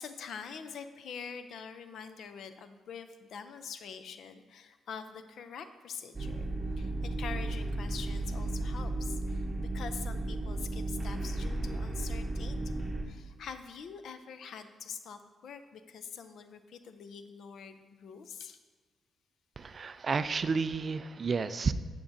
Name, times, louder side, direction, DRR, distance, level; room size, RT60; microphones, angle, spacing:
voice 1, 0.0-6.5 6.8-18.6, left 6 dB, 75° left, 10 dB, 0.4 m, -45 dB
sound 1, 6.1-13.0, right 2 dB, 25° right, 0.8 m, -34 dB
voice 2, 19.6-21.7, right 5 dB, 45° right, 13 dB, 0.3 m, -31 dB
10.5 x 5.9 x 2.6 m, 1.3 s
supercardioid pair, 60°, 0 cm